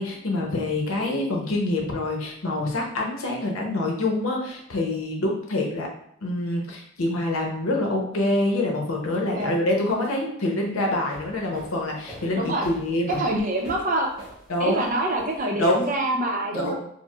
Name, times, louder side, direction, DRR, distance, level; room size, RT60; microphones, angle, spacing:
voice 1, 0.0-5.9 6.2-13.2 14.5-14.9 15.6-15.8 16.5-16.7, left 1 dB, 85° left, 0 dB, 0.7 m, -26 dB
sound 1, 10.9-15.8, equal, 5° right, 1.0 m, -43 dB
voice 2, 12.3-12.7 13.2-14.1 14.6-16.7, right 1 dB, 40° right, 2 dB, 0.5 m, -26 dB
4.5 x 2.0 x 2.3 m, 0.72 s
head